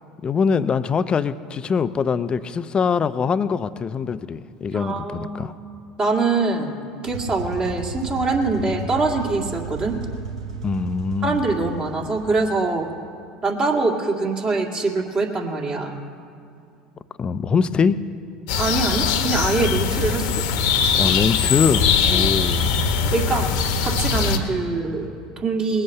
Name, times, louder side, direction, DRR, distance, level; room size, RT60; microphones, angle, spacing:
voice 1, 0.2-5.5 10.6-11.4 17.2-18.0 20.9-22.7, left 6 dB, 30° left, 13 dB, 0.6 m, -23 dB
voice 2, 4.7-5.5 6.0-6.8 7.0-10.0 11.2-12.9 13.4-16.0 18.6-20.4 21.0-21.1 22.1-22.3 23.1-23.5 23.8-25.8, right 3 dB, 35° right, 0 dB, 2.2 m, -24 dB
sound 1, 7.0-12.5, right 2 dB, 85° right, 1.2 m, -34 dB
sound 2, 18.5-24.4, left 6 dB, 65° left, 1.3 m, -21 dB
20.0 x 8.0 x 6.6 m, 2.5 s
hypercardioid pair, 75°, 3 cm